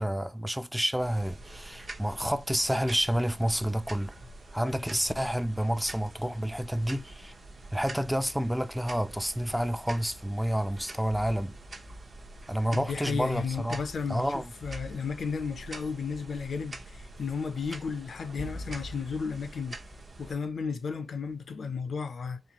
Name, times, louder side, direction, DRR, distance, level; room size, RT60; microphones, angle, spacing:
voice 1, 0.0-4.1 4.5-7.3 7.7-11.5 12.5-13.8 14.1-14.5, equal, 5° right, 0.3 m, -29 dB
sound 1, 1.0-20.3, right 1 dB, 50° right, 0.7 m, -45 dB
voice 2, 12.7-19.8 20.2-22.4, left 5 dB, 75° left, 0.5 m, -34 dB
4.2 x 2.4 x 2.9 m
wide cardioid pair, 90°, 0 cm